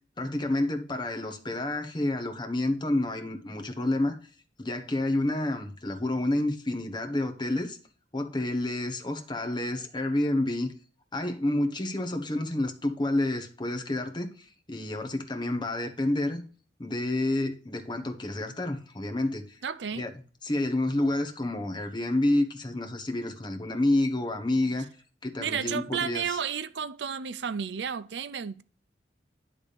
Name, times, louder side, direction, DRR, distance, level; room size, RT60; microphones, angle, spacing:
voice 1, 0.2-4.2 4.6-7.8 8.1-10.7 11.1-16.4 16.8-19.6 19.9-20.1 20.4-24.9 25.2-26.4, left 1 dB, 25° left, 1.1 m, -29 dB
voice 2, 19.6-20.1 25.4-28.6, right 7 dB, 75° right, 0.5 m, -32 dB
10.5 x 3.6 x 6.6 m
head